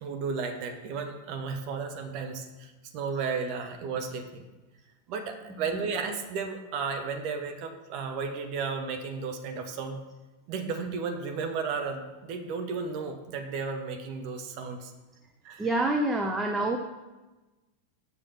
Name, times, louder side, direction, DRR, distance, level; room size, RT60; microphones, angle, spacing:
voice 1, 0.0-4.4 5.1-10.0 10.5-14.9 15.4-15.7, right 5 dB, 45° right, 6 dB, 1.3 m, -34 dB
voice 2, 15.6-16.8, right 2 dB, 10° right, 3 dB, 0.8 m, -27 dB
7.2 x 7.1 x 5.8 m, 1.1 s
figure-of-eight pair, 90°, 0 cm